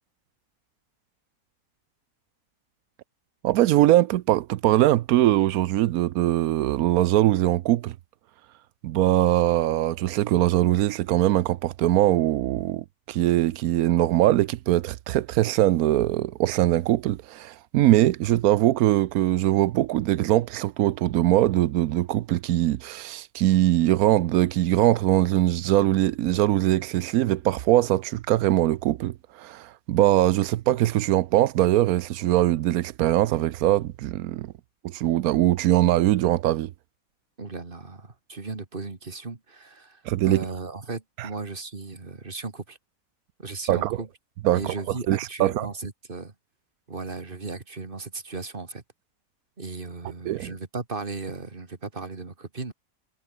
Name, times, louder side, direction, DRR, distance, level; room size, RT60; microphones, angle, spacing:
voice 1, 3.4-7.9 8.8-34.5 34.8-36.7 40.1-40.4 41.2-41.3 43.7-44.0 44.4-44.6 45.1-45.7 50.3-50.5, right 14 dB, 90° right, 1.1 m, -22 dB
voice 2, 37.4-42.8 43.4-44.1 44.5-46.3 46.9-48.8 49.6-52.7, right 3 dB, 40° right, 2.5 m, -36 dB
omnidirectional pair, 1.5 m